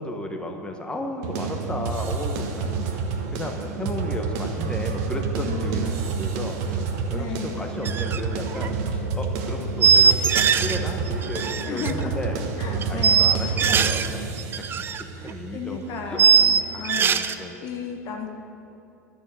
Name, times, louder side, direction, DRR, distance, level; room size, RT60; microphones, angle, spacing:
voice 1, 0.0-6.8 7.1-12.4 12.9-14.6 15.0-16.2 16.9-17.6, left 1 dB, 10° left, 3 dB, 1.3 m, -34 dB
sound 1, 1.2-17.0, right 5 dB, 50° right, 1.3 m, -29 dB
voice 2, 5.4-6.0 7.1-7.6 11.6-12.2 12.6-13.3 15.2-18.3, left 6 dB, 40° left, 3 dB, 1.1 m, -34 dB
sound 2, 7.8-8.2 8.5-8.7 9.8-10.8 11.1-11.9 12.8-14.1 14.4-15.0 15.3-15.4 16.2-17.3, right 6 dB, 25° right, 0.5 m, -20 dB
11.5 x 7.0 x 8.5 m, 2.8 s
figure-of-eight pair, 80°, 9 cm